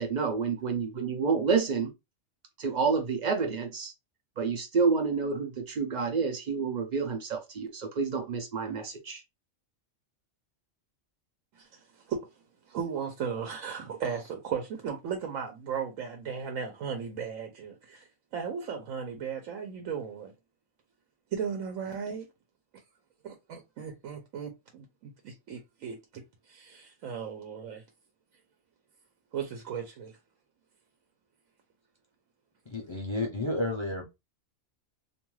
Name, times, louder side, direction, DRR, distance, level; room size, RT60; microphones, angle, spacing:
voice 1, 0.0-1.9 2.6-3.9 4.4-9.2, right 5 dB, 60° right, 0.4 m, -29 dB
voice 2, 11.5-12.2 12.7-20.3 21.3-22.3 23.2-27.8 29.3-30.2, right 7 dB, 90° right, 1.0 m, -36 dB
voice 3, 32.7-34.0, left 2 dB, 40° left, 0.4 m, -31 dB
2.6 x 2.2 x 3.0 m
omnidirectional pair, 1.3 m